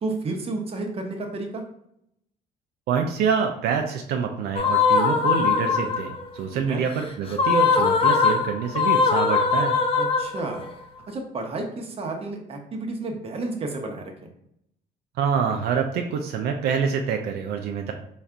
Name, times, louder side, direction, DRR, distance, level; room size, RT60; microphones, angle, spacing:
voice 1, 0.0-1.6 6.5-6.8 10.0-10.6 11.1-14.1, right 2 dB, 35° right, 2 dB, 0.9 m, -31 dB
voice 2, 2.9-9.8 15.2-17.9, right 6 dB, 70° right, 3 dB, 0.5 m, -26 dB
sound 1, 4.6-6.2 7.3-10.7, left 5 dB, 35° left, 0.7 m, -21 dB
4.0 x 2.5 x 4.4 m, 0.75 s
cardioid pair, 110°, 17 cm